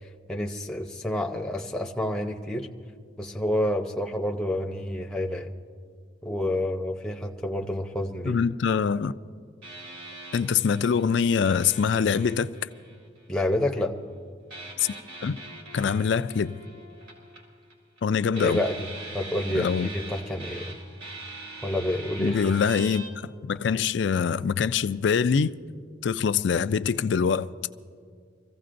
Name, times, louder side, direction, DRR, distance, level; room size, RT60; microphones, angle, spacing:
voice 1, 0.3-2.7 3.2-5.5 6.2-8.4 13.3-14.0 18.4-18.9 19.1-20.8 21.6-22.6, left 1 dB, 5° left, 0.7 m, -28 dB
voice 2, 8.3-9.1 10.3-12.5 15.2-15.4 15.7-16.6 18.0-18.6 19.6-19.9 22.2-23.0 23.5-25.5 26.0-27.5, left 6 dB, 60° left, 0.3 m, -24 dB
sound 1, 9.6-13.5 14.5-18.0 18.3-23.1, right 2 dB, 75° right, 3.7 m, -42 dB
25.5 x 15.5 x 2.5 m
head